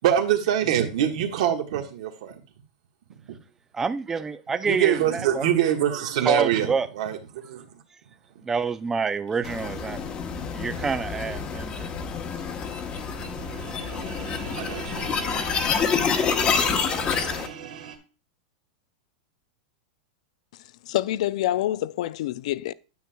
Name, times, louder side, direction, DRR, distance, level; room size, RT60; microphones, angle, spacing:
voice 1, 0.0-2.4 4.7-7.7 14.6-15.1, right 10 dB, 65° right, 1.4 m, -24 dB
voice 2, 3.7-5.5 6.2-6.9 8.4-10.0 10.5-11.9, right 5 dB, 10° right, 0.3 m, -27 dB
sound 1, 9.4-17.5, left 6 dB, 25° left, 0.9 m, -28 dB
Tomb Echo Experiment by Lisa Hammer, 12.7-18.0, right 7 dB, 90° right, 1.6 m, -40 dB
voice 3, 20.8-22.7, left 13 dB, 65° left, 0.4 m, -26 dB
9.3 x 7.8 x 2.2 m
supercardioid pair, 150°, 4 cm